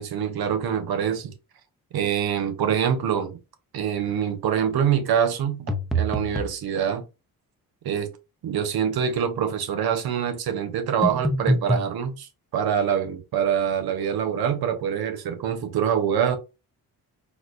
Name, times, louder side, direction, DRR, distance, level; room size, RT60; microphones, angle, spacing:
voice 1, 0.0-1.3 1.9-3.4 3.7-7.0 7.8-8.1 8.4-16.4, right 8 dB, 75° right, 0.9 m, -25 dB
sound 1, 5.7-6.6 11.0-11.9, right 1 dB, ahead, 0.7 m, -24 dB
4.0 x 2.4 x 2.6 m
cardioid pair, 85°, 38 cm